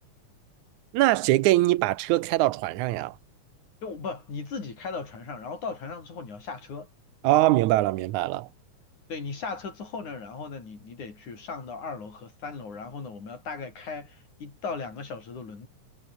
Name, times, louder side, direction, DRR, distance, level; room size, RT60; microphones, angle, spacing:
voice 1, 0.9-3.2 7.2-8.5, right 17 dB, 80° right, 2.1 m, -22 dB
voice 2, 3.8-6.9 9.1-15.7, left 4 dB, 70° left, 7.2 m, -37 dB
omnidirectional pair, 3.5 m